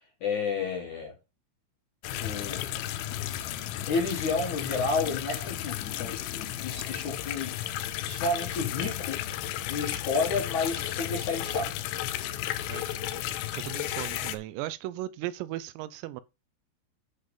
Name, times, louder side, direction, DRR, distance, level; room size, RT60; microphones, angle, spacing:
voice 1, 0.2-1.1 2.2-2.6 3.9-7.5 8.0-9.2 9.5-11.7, left 4 dB, 50° left, 2.5 m, -31 dB
sound 1, 2.0-14.4, left 13 dB, 90° left, 3.4 m, -33 dB
voice 2, 12.7-13.3 13.6-16.2, right 15 dB, 85° right, 3.4 m, -37 dB
11.0 x 4.9 x 5.5 m
omnidirectional pair, 6.0 m